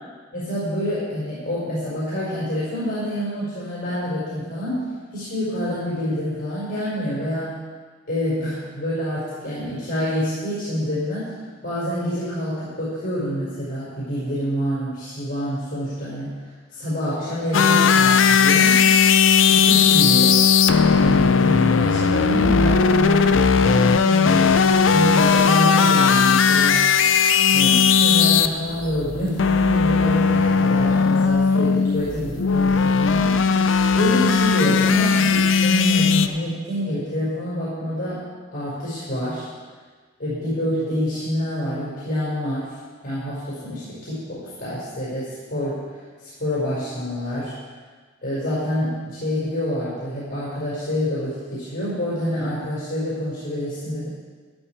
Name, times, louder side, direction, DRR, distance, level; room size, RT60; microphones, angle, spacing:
voice 1, 0.3-7.6 8.1-11.3 11.6-16.4 16.7-18.8 19.4-20.5 20.9-26.9 27.5-33.4 33.9-38.2 38.5-39.5 40.2-42.7 43.0-47.5 48.2-54.1, equal, 60° left, -9 dB, 5.1 m, -27 dB
sound 1, 17.5-36.3, left 6 dB, 90° left, 0.6 m, -17 dB
13.0 x 12.5 x 4.6 m, 1.5 s
head